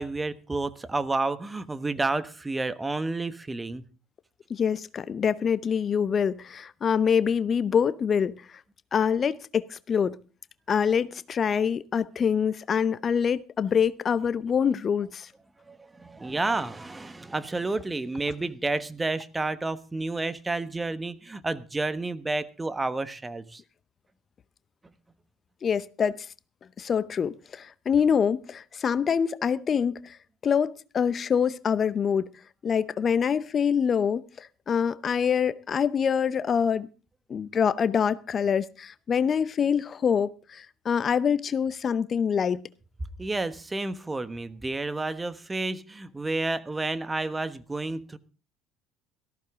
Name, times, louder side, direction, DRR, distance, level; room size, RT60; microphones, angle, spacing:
voice 1, 0.0-3.8 15.7-23.6 43.2-48.2, right 2 dB, 15° right, 1.3 m, -30 dB
voice 2, 4.5-8.6 8.9-10.2 10.7-15.3 25.6-26.3 26.8-30.2 30.4-32.3 32.6-36.9 37.3-42.6, left 7 dB, 40° left, 0.7 m, -25 dB
18.0 x 14.5 x 3.7 m
hypercardioid pair, 65°, 0 cm